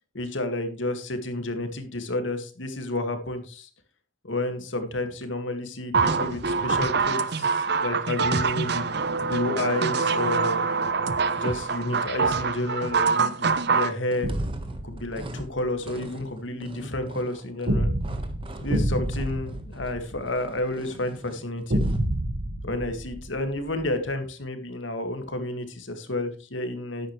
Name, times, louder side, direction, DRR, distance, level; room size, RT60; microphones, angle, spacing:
voice 1, 0.1-3.7 4.2-10.6 11.3-14.3 14.8-17.9 18.6-21.9 22.6-27.1, left 1 dB, 85° left, 7 dB, 2.1 m, -31 dB
sound 1, 5.9-13.9, right 5 dB, 60° right, 0.8 m, -25 dB
sound 2, 14.0-22.1, right 1 dB, 30° right, 1.4 m, -43 dB
sound 3, 14.2-15.6 17.7-20.6 21.7-23.9, right 1 dB, 85° right, 1.6 m, -28 dB
12.5 x 10.5 x 3.2 m, 0.35 s
head